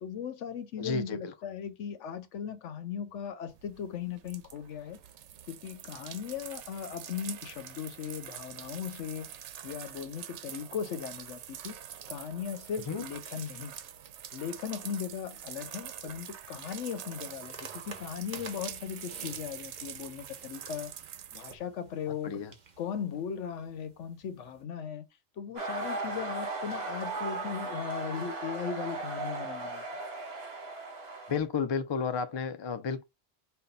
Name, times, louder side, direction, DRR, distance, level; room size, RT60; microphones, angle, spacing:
voice 1, 0.0-5.0 5.5-9.3 9.6-11.8 12.1-13.7 14.3-20.9 21.3-22.4 22.8-25.1 25.4-29.8, left 8 dB, 85° left, 1.1 m, -38 dB
voice 2, 0.8-1.3 12.9-13.0 22.2-22.5 31.3-33.0, left 5 dB, 45° left, 0.3 m, -32 dB
sound 1, 3.5-21.5, right 10 dB, 80° right, 0.9 m, -45 dB
sound 2, 17.2-24.6, right 4 dB, 40° right, 0.9 m, -52 dB
sound 3, 25.6-31.4, right 2 dB, 60° right, 1.5 m, -37 dB
5.5 x 2.3 x 4.0 m
omnidirectional pair, 1.2 m